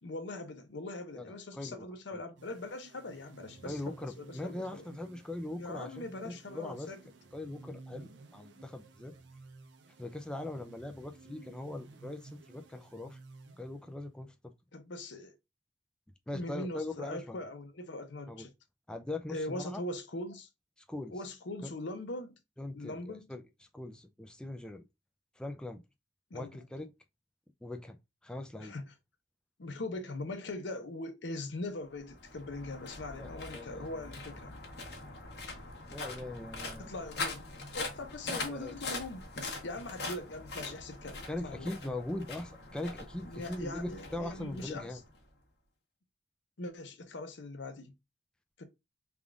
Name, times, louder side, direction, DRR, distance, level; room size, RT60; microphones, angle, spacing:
voice 1, 0.0-4.9 5.6-7.0 14.7-15.4 16.3-18.5 19.3-20.5 21.1-22.3 22.7-23.3 26.3-26.6 28.6-28.9 29.6-34.6 36.8-37.4 37.7-41.7 43.2-45.0 46.6-47.9 48.6-48.7, left 2 dB, 80° left, 0.7 m, -41 dB
voice 2, 1.2-1.8 2.1-2.2 3.7-6.9 7.3-9.1 10.0-13.2 13.6-14.5 16.3-17.4 18.3-18.5 18.9-19.8 20.9-21.1 21.6-21.7 22.6-23.4 23.7-24.8 25.4-25.8 26.3-26.9 27.6-28.0 28.2-28.7 33.2-33.9 35.9-36.9 38.3-38.8 41.3-45.0, left 2 dB, 5° left, 0.3 m, -41 dB
sound 1, 2.4-14.1, right 3 dB, 75° right, 0.6 m, -55 dB
sound 2, 31.9-45.3, left 3 dB, 65° left, 1.1 m, -43 dB
3.5 x 2.4 x 3.5 m
head